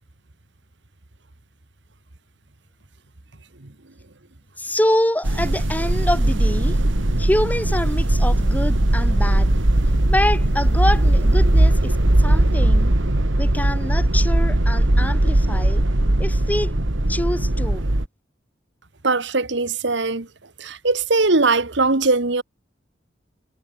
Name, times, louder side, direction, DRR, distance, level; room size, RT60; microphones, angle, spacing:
voice 1, 4.6-6.8 7.2-9.5 10.0-12.9 13.4-15.8 16.2-16.7 17.1-17.8, left 1 dB, 10° left, 4.5 m, -25 dB
sound 1, 5.2-18.1, right 1 dB, 90° right, 2.0 m, -19 dB
voice 2, 19.0-20.3 20.6-22.4, right 3 dB, 70° right, 1.7 m, -20 dB
head